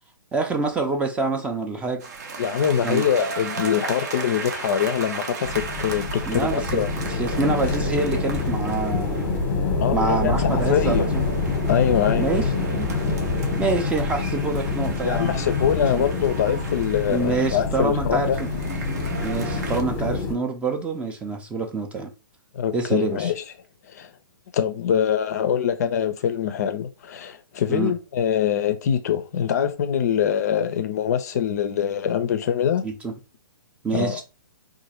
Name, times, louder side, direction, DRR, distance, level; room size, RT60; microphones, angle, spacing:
voice 1, 0.3-2.0 2.8-3.0 6.3-9.3 9.9-11.2 12.2-12.9 13.6-15.3 15.8-16.1 17.1-18.5 19.2-22.1 22.7-23.3 27.7-27.9 32.8-33.1 33.8-34.2, right 3 dB, 10° right, 0.4 m, -26 dB
sound 1, 2.0-9.5 10.2-17.7 18.2-19.8, right 4 dB, 50° right, 0.6 m, -36 dB
voice 2, 2.4-6.9 9.8-11.1 11.7-12.3 15.0-18.4 22.5-23.4 23.9-24.1 24.5-32.8 33.9-34.2, left 8 dB, 50° left, 0.4 m, -24 dB
sound 2, 5.4-20.3, left 3 dB, 15° left, 0.8 m, -26 dB
3.8 x 2.5 x 2.8 m
figure-of-eight pair, 120°, 11 cm